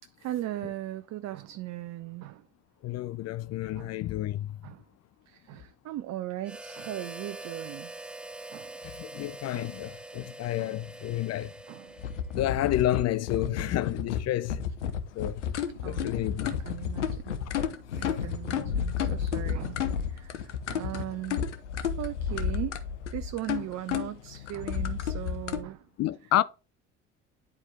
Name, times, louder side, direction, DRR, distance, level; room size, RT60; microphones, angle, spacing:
voice 1, 0.2-2.5 3.7-4.0 4.6-4.8 5.3-8.1 8.5-8.8 9.5-9.8 10.6-10.8 11.7-12.0 15.8-16.1 16.4-17.4 18.0-21.5 22.0-22.8 23.1-25.9, right 14 dB, 50° right, 0.7 m, -38 dB
voice 2, 2.8-4.6 8.8-11.5 12.3-14.6 15.1-15.4 15.8-16.6 18.0-18.1 19.4-19.6 26.0-26.4, left 14 dB, 45° left, 0.5 m, -30 dB
Harmonica, 6.4-12.5, right 2 dB, 5° right, 0.5 m, -44 dB
sound 1, 12.0-25.6, left 8 dB, 85° left, 0.9 m, -31 dB
10.5 x 4.5 x 3.4 m
hypercardioid pair, 60°, 35 cm